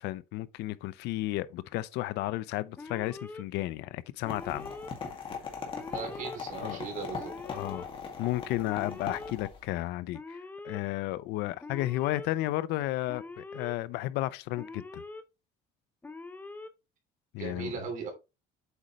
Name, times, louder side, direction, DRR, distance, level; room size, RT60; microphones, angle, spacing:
voice 1, 0.0-4.7 6.6-6.8 7.4-7.9 8.2-10.4 10.6-15.0 17.3-17.8, left 16 dB, 75° left, 0.5 m, -33 dB
Alarm, 2.8-3.4 4.2-4.9 5.7-6.4 7.2-7.8 8.7-9.3 10.1-10.8 11.6-12.3 13.1-13.7 14.6-15.2 16.0-16.7, left 3 dB, 10° left, 0.7 m, -43 dB
sound 1, 4.3-9.7, left 6 dB, 30° left, 2.1 m, -40 dB
voice 2, 5.9-7.3 17.4-18.1, right 5 dB, 50° right, 2.8 m, -38 dB
8.1 x 5.2 x 3.0 m
cardioid pair, 150°, 17 cm